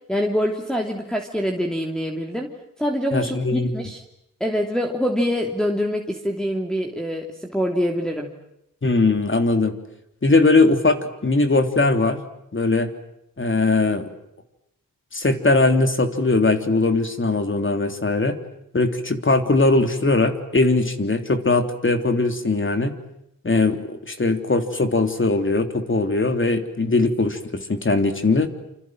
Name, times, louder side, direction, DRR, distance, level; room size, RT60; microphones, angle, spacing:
voice 1, 0.1-4.0 4.4-8.3, equal, ahead, 0 dB, 3.0 m, -25 dB
voice 2, 3.1-3.7 8.8-9.8 10.2-12.2 12.5-12.9 13.4-14.1 15.1-18.4 18.7-22.9 23.4-28.5, left 3 dB, 40° left, 7 dB, 3.4 m, -20 dB
28.5 x 27.0 x 7.7 m, 0.82 s
wide cardioid pair, 80°, 32 cm